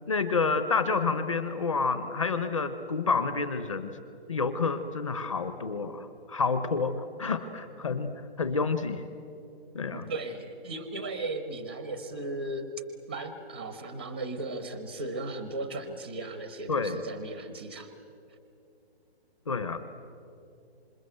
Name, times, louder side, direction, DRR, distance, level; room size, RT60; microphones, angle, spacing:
voice 1, 0.1-3.9 4.3-8.1 8.4-9.1 9.7-10.1 16.7-17.0 19.5-19.8, left 4 dB, 30° left, 10 dB, 0.9 m, -29 dB
voice 2, 9.8-12.7 13.1-17.9, right 2 dB, 10° right, 9 dB, 0.5 m, -36 dB
27.0 x 26.0 x 7.8 m, 2.7 s
hypercardioid pair, 175°, 32 cm